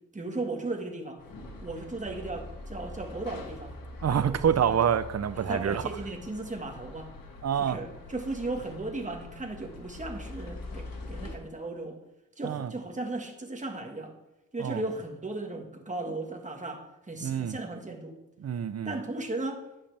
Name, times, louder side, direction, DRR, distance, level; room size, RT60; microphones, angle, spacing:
voice 1, 0.1-1.2 1.6-3.7 4.0-4.8 5.3-7.1 7.6-12.0 12.4-14.1 14.5-18.1 18.9-19.6, right 2 dB, 20° right, 2 dB, 1.7 m, -36 dB
sound 1, 1.2-11.4, left 2 dB, 90° left, 1.8 m, -43 dB
voice 2, 4.0-5.8 7.4-7.8 12.4-12.7 14.6-14.8 17.2-17.6 18.4-19.0, right 8 dB, 50° right, 14 dB, 0.6 m, -27 dB
11.0 x 11.0 x 3.5 m, 0.95 s
wide cardioid pair, 110°, 33 cm